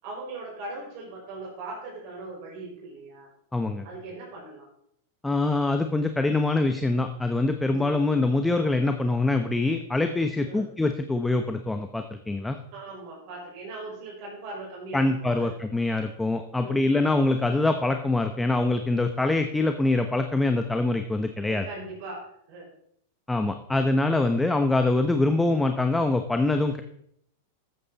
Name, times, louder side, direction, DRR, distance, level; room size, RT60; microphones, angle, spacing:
voice 1, 0.0-3.3 3.8-4.7 7.7-8.0 10.5-10.6 12.7-15.5 16.5-17.1 21.4-22.2 22.5-22.7, right 2 dB, 55° right, -3 dB, 5.4 m, -39 dB
voice 2, 3.5-3.8 5.2-12.6 14.9-21.7 23.3-26.8, left 2 dB, 10° left, 7 dB, 0.9 m, -24 dB
13.5 x 8.5 x 4.1 m, 0.70 s
hypercardioid pair, 110°, 0 cm